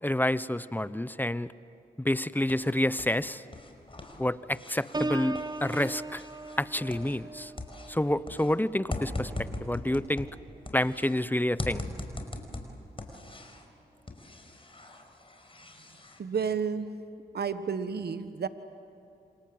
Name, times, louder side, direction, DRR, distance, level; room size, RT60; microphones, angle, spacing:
voice 1, 0.0-1.5 2.0-3.4 4.2-6.2 6.6-7.5 7.9-9.3 9.6-10.3 10.7-11.8, left 1 dB, 10° left, 16 dB, 0.9 m, -28 dB
sound 1, 2.1-3.2 3.5-7.3 7.6-11.2 11.6-13.7 14.1-16.2, left 2 dB, 30° left, 5.1 m, -40 dB
Piano, 4.9-10.6 11.0-11.4, right 2 dB, 20° right, 0.9 m, -39 dB
voice 2, 16.2-17.0 17.3-18.5, right 6 dB, 60° right, 10 dB, 1.4 m, -31 dB
28.0 x 27.0 x 7.9 m, 2.8 s
cardioid pair, 50°, 18 cm